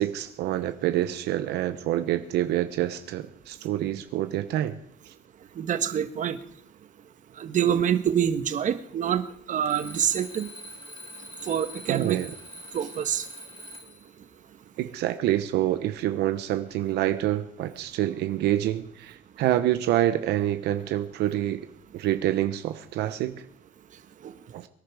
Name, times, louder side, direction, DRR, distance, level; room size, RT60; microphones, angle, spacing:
voice 1, 0.0-4.7 5.1-5.2 11.9-12.3 14.8-21.7 21.9-23.4 24.5-24.7, right 13 dB, 80° right, 10 dB, 0.9 m, -27 dB
voice 2, 5.6-6.4 7.4-9.2 9.5-10.5 11.4-12.2 12.7-13.3, right 9 dB, 50° right, 11 dB, 1.2 m, -26 dB
Alarm, 9.7-14.1, left 1 dB, 35° left, 3.9 m, -43 dB
23.0 x 10.5 x 4.8 m, 0.66 s
cardioid pair, 110°, 17 cm